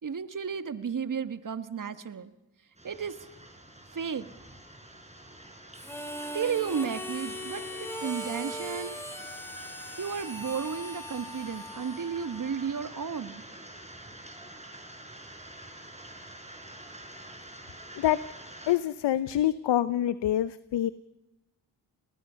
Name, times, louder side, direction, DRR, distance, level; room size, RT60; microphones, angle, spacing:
voice 1, 0.0-2.3 2.8-3.2 3.9-4.3 6.3-9.0 10.0-13.4, right 6 dB, 45° right, 11 dB, 1.5 m, -33 dB
sound 1, 2.7-18.8, right 1 dB, 15° right, 5.5 m, -47 dB
Harmonica, 5.7-12.7, equal, 5° left, 5.3 m, -40 dB
voice 2, 18.7-20.9, left 12 dB, 65° left, 16 dB, 0.7 m, -26 dB
29.5 x 19.0 x 5.7 m, 0.97 s
supercardioid pair, 45°, 45 cm